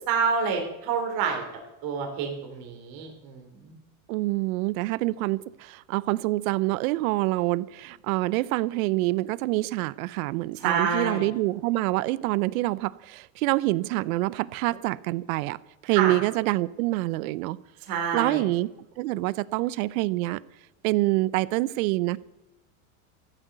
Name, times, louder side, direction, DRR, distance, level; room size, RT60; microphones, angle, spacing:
voice 1, 0.1-1.4 1.8-3.7 10.6-11.3 15.9-16.1 17.9-18.4, right 6 dB, 50° right, 3.5 m, -28 dB
voice 2, 4.1-17.6 18.1-18.7 19.0-20.4 20.8-22.2, right 19 dB, 70° right, 0.7 m, -26 dB
14.5 x 10.0 x 6.7 m
supercardioid pair, 120°, 44 cm